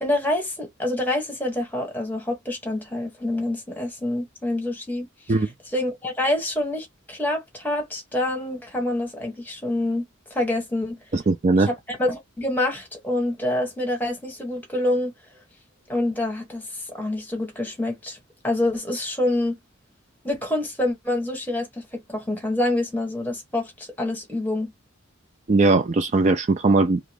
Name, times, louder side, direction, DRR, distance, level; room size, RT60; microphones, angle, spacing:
voice 1, 0.0-5.1 5.7-10.0 10.3-11.0 11.6-11.7 12.0-15.1 15.9-16.6 17.0-18.2 18.4-19.6 20.2-21.7 21.9-24.7, left 1 dB, 10° left, 1.3 m, -26 dB
voice 2, 11.1-11.7 25.5-27.0, right 3 dB, 35° right, 0.3 m, -19 dB
2.9 x 2.4 x 3.4 m
head